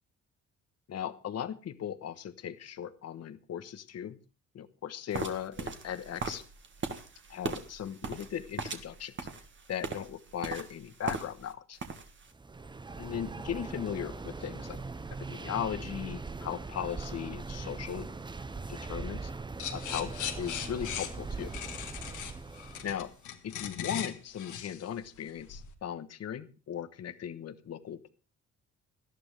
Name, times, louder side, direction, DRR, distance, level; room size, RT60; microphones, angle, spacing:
voice 1, 0.9-4.2 4.5-6.4 7.3-9.1 9.7-11.8 13.0-14.8 15.3-18.1 18.7-19.3 19.7-21.5 22.8-23.1 23.4-28.1, left 9 dB, 55° left, 12 dB, 1.1 m, -38 dB
sound 1, 5.1-11.5 11.8-12.3, right 4 dB, 40° right, 1.7 m, -39 dB
sound 2, 12.3-23.2, right 3 dB, 15° right, 0.7 m, -41 dB
sound 3, 19.6-25.7, left 9 dB, 80° left, 1.7 m, -39 dB
18.0 x 11.5 x 3.3 m, 0.34 s
cardioid pair, 90°, 30 cm